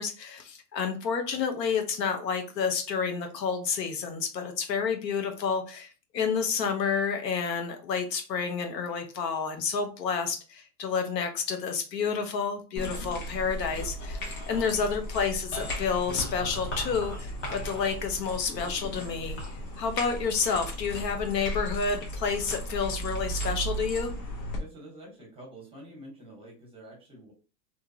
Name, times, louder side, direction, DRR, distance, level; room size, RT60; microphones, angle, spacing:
voice 1, 0.0-19.4 19.8-24.1, left 6 dB, 80° left, 5 dB, 0.8 m, -30 dB
sound 1, 12.8-24.6, equal, 55° left, 1.2 m, -36 dB
sound 2, 12.9-21.3 21.9-22.6, left 1 dB, 25° left, 0.8 m, -44 dB
voice 2, 24.6-27.3, right 1 dB, 10° right, -1 dB, 1.1 m, -47 dB
2.7 x 2.2 x 2.6 m, 0.35 s
hypercardioid pair, 120°, 49 cm